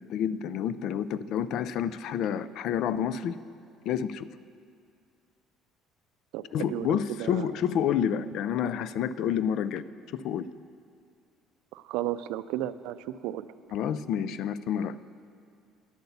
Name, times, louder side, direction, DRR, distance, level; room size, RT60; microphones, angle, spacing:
voice 1, 0.1-3.4 3.9-4.3 6.5-9.8 10.1-10.5 13.7-15.0, left 8 dB, 55° left, 16 dB, 0.3 m, -29 dB
voice 2, 6.7-7.5 11.7-13.5, right 13 dB, 85° right, 14 dB, 0.4 m, -34 dB
10.0 x 7.9 x 7.0 m, 2.3 s
cardioid pair, 165°, 0 cm